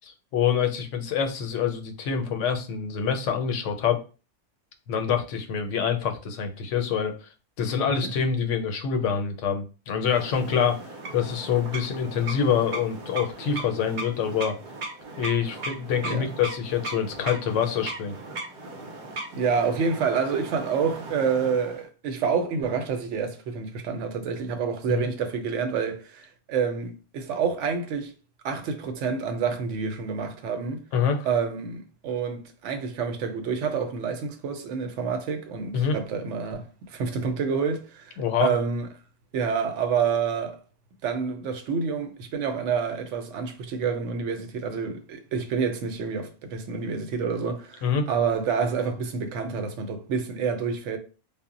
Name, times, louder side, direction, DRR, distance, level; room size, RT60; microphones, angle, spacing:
voice 1, 0.0-4.0 4.9-7.1 7.6-10.8 11.1-14.5 15.2-18.1 24.9-25.0 30.9-31.3 35.7-36.0 38.2-38.5 47.8-48.1, left 7 dB, 80° left, 0.9 m, -26 dB
sound 1, 10.0-21.9, right 2 dB, 55° right, 0.6 m, -38 dB
voice 2, 19.3-28.1 28.4-30.8 31.2-38.9 39.3-40.6 41.0-51.0, right 6 dB, 80° right, 0.9 m, -28 dB
2.0 x 2.0 x 3.6 m
omnidirectional pair, 1.2 m